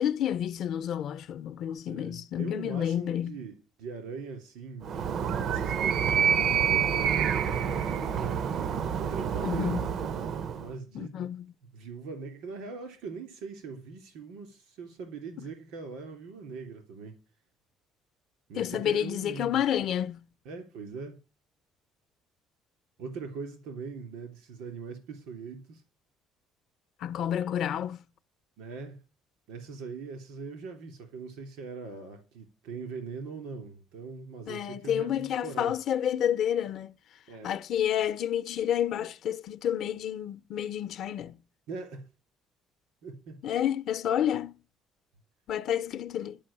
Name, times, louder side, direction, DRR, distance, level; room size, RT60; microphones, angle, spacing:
voice 1, 0.0-3.4 9.4-9.9 10.9-11.5 18.6-20.2 27.0-28.0 34.5-37.0 37.4-41.4 43.4-44.6 45.5-46.4, left 10 dB, 60° left, 0.6 m, -30 dB
voice 2, 1.9-5.0 5.3-9.8 10.6-11.2 11.7-17.2 18.5-19.6 20.4-21.2 23.0-25.8 28.6-29.0 29.5-35.8 37.3-37.5 41.7-42.1 43.0-43.4, right 4 dB, 85° right, 3.2 m, -41 dB
Animal, 4.8-10.7, right 8 dB, 55° right, 0.6 m, -28 dB
11.5 x 5.3 x 8.7 m
cardioid pair, 115°, 0 cm